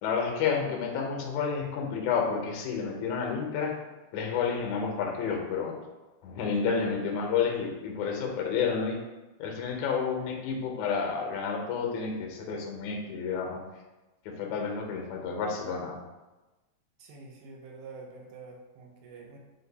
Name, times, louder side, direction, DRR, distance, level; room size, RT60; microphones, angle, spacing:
voice 1, 0.0-3.8 4.1-5.7 6.2-9.0 9.4-13.6 14.3-16.0, left 6 dB, 75° left, 1 dB, 1.9 m, -30 dB
voice 2, 17.0-19.4, right 4 dB, 85° right, 0 dB, 2.2 m, -47 dB
5.1 x 2.2 x 3.9 m, 1.1 s
omnidirectional pair, 3.6 m